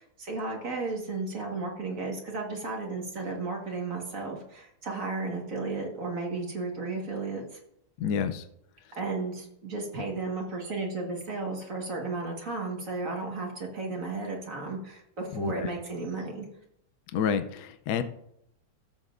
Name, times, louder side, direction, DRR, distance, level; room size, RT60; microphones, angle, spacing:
voice 1, 0.0-7.6 9.0-16.5, right 3 dB, 55° right, 0 dB, 2.0 m, -34 dB
voice 2, 8.0-8.4 15.3-15.7 17.1-18.0, left 7 dB, 80° left, 9 dB, 1.2 m, -29 dB
14.0 x 7.3 x 2.5 m, 0.74 s
omnidirectional pair, 1.7 m